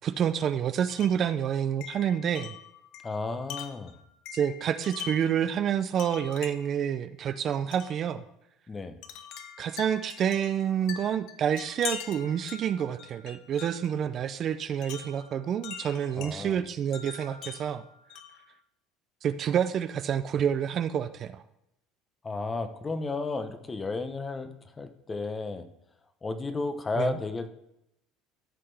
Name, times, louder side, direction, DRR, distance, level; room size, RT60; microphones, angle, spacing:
voice 1, 0.0-2.5 4.3-8.2 9.6-17.9 19.2-21.4 27.0-27.2, right 9 dB, 40° right, 12 dB, 0.4 m, -28 dB
Wind chime, 0.9-1.3 1.8-5.4 6.0-6.8 7.7-8.0 9.0-14.0 14.8-16.4 16.9-18.5, left 8 dB, 65° left, 0.8 m, -42 dB
voice 2, 3.0-3.9 8.7-9.0 16.1-16.6 22.2-25.7 26.2-27.5, left 3 dB, 20° left, 10 dB, 0.8 m, -33 dB
13.5 x 5.8 x 3.4 m, 0.83 s
cardioid pair, 130°, 0 cm